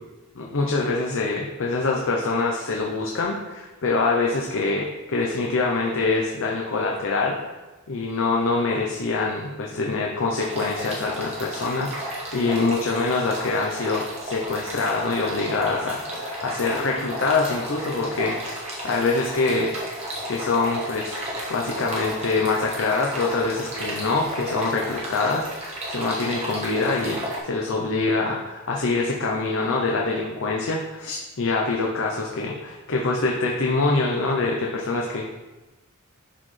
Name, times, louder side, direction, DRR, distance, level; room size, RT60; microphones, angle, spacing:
voice 1, 0.4-7.4 7.9-18.6 18.8-19.7 20.3-21.2 21.5-35.3, left 3 dB, 60° left, -1 dB, 0.7 m, -25 dB
sound 1, 10.4-27.4, equal, 30° right, 1.6 m, -33 dB
11.0 x 4.1 x 3.3 m, 1.2 s
head